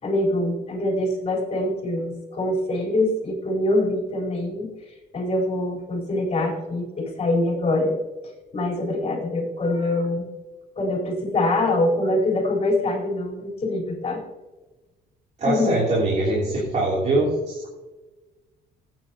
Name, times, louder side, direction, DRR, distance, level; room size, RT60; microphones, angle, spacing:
voice 1, 0.0-4.7 5.1-8.0 8.5-10.3 10.8-14.2 15.4-15.7, left 1 dB, 35° left, -2 dB, 4.3 m, -24 dB
voice 2, 15.4-17.7, right 2 dB, 45° right, -4 dB, 3.2 m, -23 dB
16.0 x 9.2 x 2.9 m, 1.2 s
cardioid pair, 110°, 17 cm